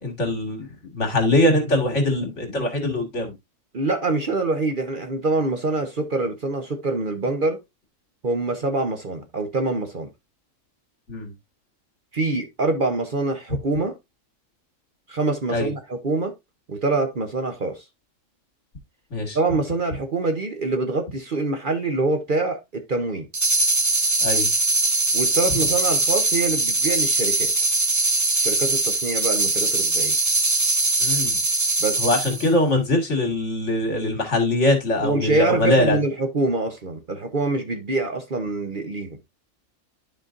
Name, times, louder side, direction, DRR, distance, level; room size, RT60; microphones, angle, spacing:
voice 1, 0.0-3.3 11.1-11.3 15.5-15.7 19.1-19.4 24.2-24.5 31.0-31.4 32.0-36.0, left 1 dB, 60° left, 2.4 m, -22 dB
voice 2, 3.7-7.6 8.2-10.1 12.1-13.9 15.1-16.3 16.7-17.8 19.3-23.2 25.1-27.5 28.4-30.1 31.8-32.0 35.0-39.2, right 3 dB, 45° right, 1.0 m, -25 dB
sound 1, 23.3-32.5, right 2 dB, 25° right, 0.4 m, -21 dB
12.0 x 4.5 x 2.5 m
omnidirectional pair, 1.4 m